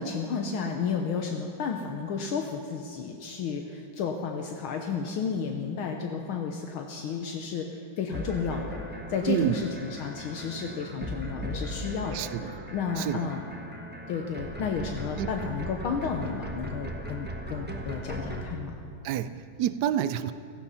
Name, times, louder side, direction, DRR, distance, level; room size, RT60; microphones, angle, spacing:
voice 1, 0.0-8.8 9.1-12.3 12.7-13.4 14.1-18.8, left 5 dB, 75° left, 3 dB, 1.7 m, -32 dB
sound 1, 8.1-18.4, equal, 5° right, 0.9 m, -38 dB
voice 2, 9.3-9.6 12.1-12.5 13.0-13.3 15.2-15.3 19.0-20.3, right 10 dB, 80° right, 12 dB, 0.9 m, -28 dB
16.5 x 14.0 x 5.6 m, 2.6 s
omnidirectional pair, 2.4 m